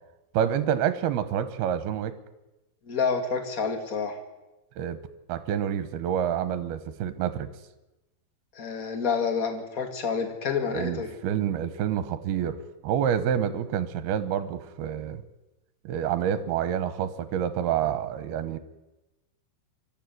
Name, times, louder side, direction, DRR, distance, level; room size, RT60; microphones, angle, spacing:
voice 1, 0.3-2.1 4.8-5.0 5.3-7.5 10.6-12.6 12.8-15.2 15.8-18.6, right 9 dB, 75° right, 12 dB, 3.0 m, -28 dB
voice 2, 2.9-4.1 8.5-11.1, left 5 dB, 30° left, 5 dB, 1.7 m, -28 dB
24.5 x 13.0 x 9.3 m, 1.0 s
omnidirectional pair, 4.6 m